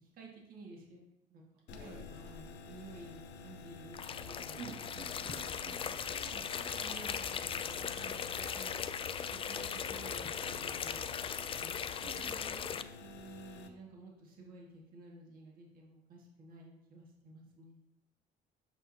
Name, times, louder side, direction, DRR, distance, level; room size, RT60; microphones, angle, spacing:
voice 1, 0.0-4.8 5.2-5.3 5.9-8.8 9.5-11.8 12.3-17.8, right 2 dB, 60° right, -2 dB, 1.8 m, -53 dB
sound 1, 1.7-13.7, left 4 dB, 90° left, 0.7 m, -51 dB
voice 2, 1.8-2.1 4.6-5.8 8.3-8.9 12.0-12.4, right 5 dB, 85° right, -3 dB, 1.8 m, -50 dB
sound 2, 3.9-12.8, left 7 dB, 30° left, 0.4 m, -39 dB
8.0 x 6.1 x 2.8 m, 0.86 s
cardioid pair, 110°, 17 cm